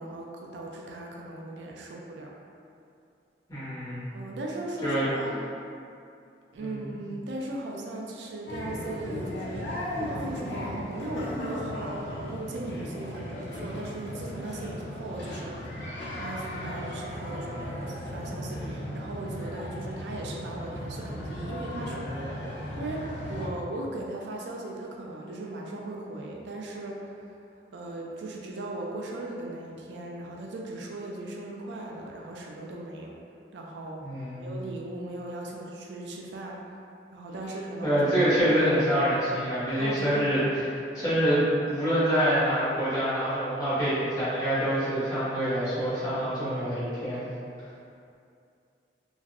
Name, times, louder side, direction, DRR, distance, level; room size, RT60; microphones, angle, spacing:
voice 1, 0.0-2.3 4.1-5.4 6.5-15.6 16.1-22.1 22.8-27.3 27.7-33.2 33.5-34.0 34.4-36.6 37.1-38.0 38.6-38.7 39.8-40.2, right 2 dB, 80° right, -1 dB, 0.4 m, -38 dB
voice 2, 3.5-4.0 4.8-5.1 6.6-6.9 34.0-34.5 37.8-40.7 40.9-41.4 41.7-47.2, equal, 20° left, -13 dB, 1.1 m, -26 dB
sound 1, 8.5-23.5, left 1 dB, 85° left, 0.6 m, -36 dB
3.0 x 2.5 x 2.5 m, 2.5 s
head